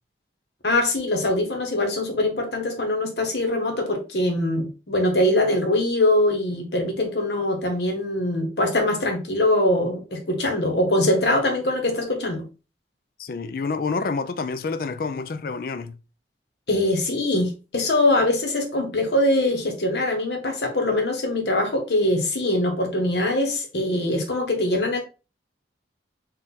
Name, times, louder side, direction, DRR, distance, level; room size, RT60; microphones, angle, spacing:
voice 1, 0.6-12.4 16.7-25.0, left 1 dB, 70° left, 1.1 m, -23 dB
voice 2, 13.2-16.0, left 4 dB, 50° left, 0.4 m, -28 dB
4.2 x 2.5 x 3.9 m
head